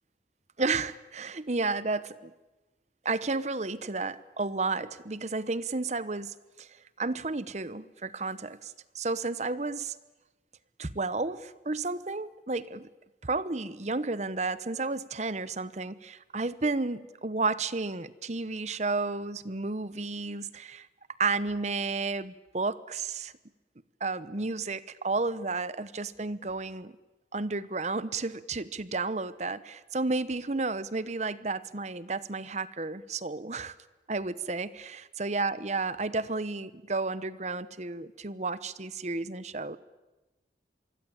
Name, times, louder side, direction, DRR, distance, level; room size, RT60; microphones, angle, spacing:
voice 1, 0.6-2.3 3.0-6.7 7.0-10.0 10.8-12.9 13.2-20.9 21.2-23.3 24.0-26.9 27.3-33.7 34.1-34.9 35.2-39.8, right 3 dB, 40° right, 16 dB, 0.9 m, -32 dB
25.5 x 24.5 x 8.8 m, 1.1 s
head